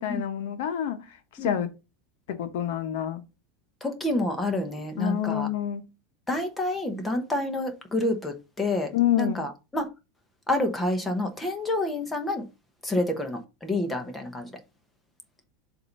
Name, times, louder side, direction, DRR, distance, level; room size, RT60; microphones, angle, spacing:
voice 1, 0.0-1.7 2.3-3.2 5.0-5.9 8.9-9.5, left 11 dB, 60° left, 0.9 m, -28 dB
voice 2, 3.8-5.5 6.3-8.9 9.2-9.9 10.5-12.4 12.8-14.5, left 1 dB, 5° left, 1.0 m, -28 dB
7.5 x 2.7 x 5.2 m
supercardioid pair, 175°, 0 cm